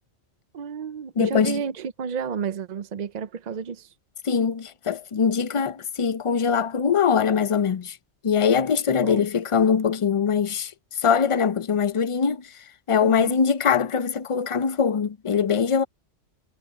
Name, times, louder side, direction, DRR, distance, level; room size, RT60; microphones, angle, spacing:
voice 1, 0.5-3.9 8.9-9.3 13.0-13.4, right 7 dB, 50° right, 0.5 m, -31 dB
voice 2, 1.2-1.6 4.2-8.0 8.2-10.7 11.0-12.5 12.9-15.8, left 6 dB, 40° left, 0.4 m, -22 dB
omnidirectional pair, 1.2 m